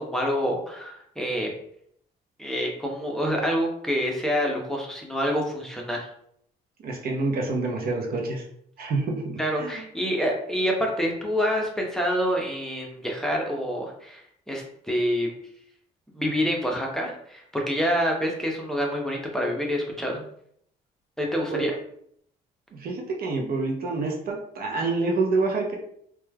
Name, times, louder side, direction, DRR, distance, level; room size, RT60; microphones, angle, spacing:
voice 1, 0.0-1.5 2.4-6.0 9.4-15.3 16.1-20.2 21.2-21.8, equal, 5° left, -1 dB, 0.7 m, -27 dB
voice 2, 6.8-8.4 8.8-9.8 21.5-21.7 22.7-25.8, right 3 dB, 55° right, 1 dB, 0.6 m, -27 dB
3.0 x 2.2 x 2.2 m, 0.68 s
supercardioid pair, 75°, 18 cm